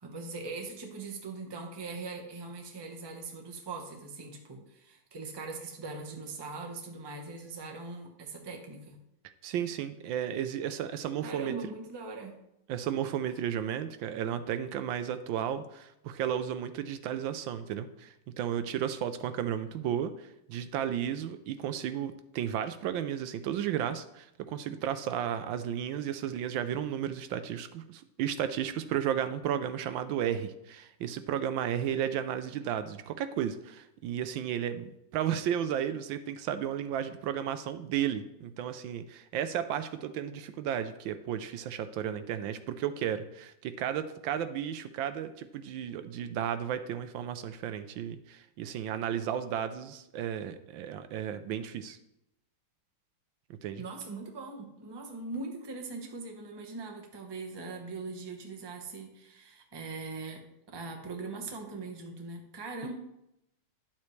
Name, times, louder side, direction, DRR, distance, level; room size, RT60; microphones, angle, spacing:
voice 1, 0.0-9.0 11.2-12.3 53.8-60.4 60.7-62.9, right 3 dB, 20° right, 2 dB, 0.7 m, -41 dB
voice 2, 9.4-11.5 12.7-52.0 53.6-53.8 62.8-62.9, right 9 dB, 80° right, 10 dB, 1.3 m, -33 dB
10.5 x 7.4 x 3.2 m, 0.84 s
omnidirectional pair, 2.2 m